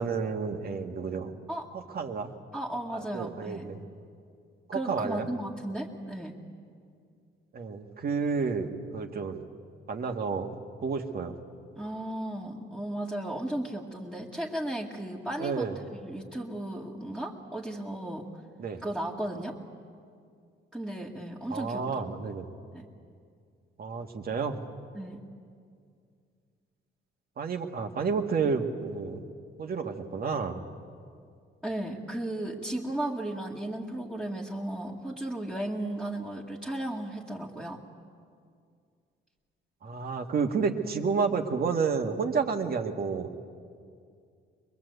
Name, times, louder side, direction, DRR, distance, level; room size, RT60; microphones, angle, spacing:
voice 1, 0.0-1.3 1.9-2.3 2.9-3.8 4.7-5.3 7.5-9.4 9.9-10.5 10.8-11.4 15.4-15.8 18.6-18.8 21.5-22.5 23.8-24.6 27.4-29.2 29.6-30.6 39.8-43.4, right 5 dB, 50° right, 3 dB, 1.9 m, -30 dB
voice 2, 2.5-3.7 4.7-6.4 11.8-18.3 18.8-19.6 20.7-21.8 22.7-22.9 24.9-25.2 31.6-37.8, right 1 dB, 5° right, -6 dB, 2.2 m, -35 dB
23.0 x 21.5 x 8.2 m, 2.3 s
cardioid pair, 90°, 20 cm